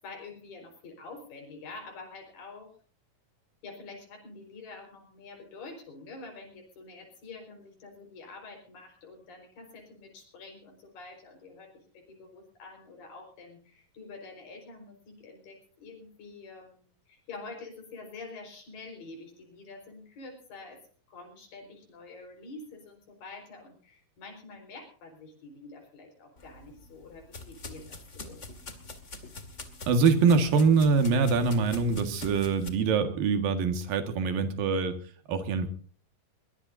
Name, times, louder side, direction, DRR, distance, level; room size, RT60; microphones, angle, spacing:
voice 1, 0.0-2.7 3.6-20.8 21.1-28.4, left 3 dB, 85° left, 2 dB, 6.5 m, -47 dB
sound 1, 26.4-32.7, left 3 dB, 25° left, 1.9 m, -44 dB
voice 2, 29.9-35.0 35.3-35.7, right 5 dB, 85° right, 8 dB, 3.6 m, -24 dB
22.0 x 21.5 x 2.7 m, 0.43 s
omnidirectional pair, 3.9 m